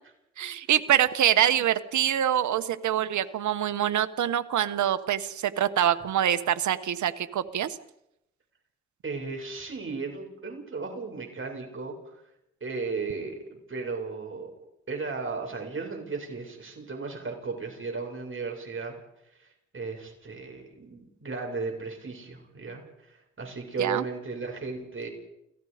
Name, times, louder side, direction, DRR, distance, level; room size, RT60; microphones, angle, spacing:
voice 1, 0.4-7.8 23.8-24.0, right 10 dB, 80° right, 12 dB, 1.3 m, -25 dB
voice 2, 9.0-12.2 12.6-14.5 14.9-18.9 19.4-19.5 19.7-25.1, right 4 dB, 45° right, 2 dB, 7.0 m, -35 dB
29.5 x 18.0 x 5.1 m, 0.81 s
cardioid pair, 55°, 29 cm